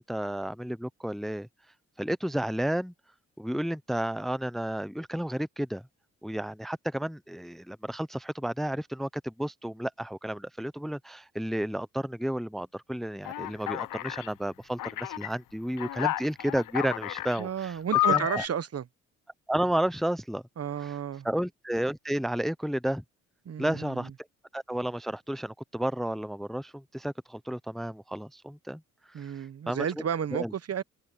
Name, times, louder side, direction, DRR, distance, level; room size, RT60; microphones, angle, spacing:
voice 1, 0.0-1.5 2.0-2.9 3.4-5.8 6.2-17.8 18.1-18.4 19.5-20.4 20.8-21.0 21.2-23.0 23.6-24.1 24.5-28.8 29.2-29.9 30.3-30.5, right 1 dB, ahead, 0.8 m, -32 dB
Alarm, 13.3-14.3 14.8-15.3 15.8-17.4 17.9-18.5, left 14 dB, 70° left, 1.0 m, -30 dB
voice 2, 17.4-18.8 20.6-21.3 23.4-24.1 29.1-30.8, right 8 dB, 45° right, 1.1 m, -32 dB
supercardioid pair, 60°, 33 cm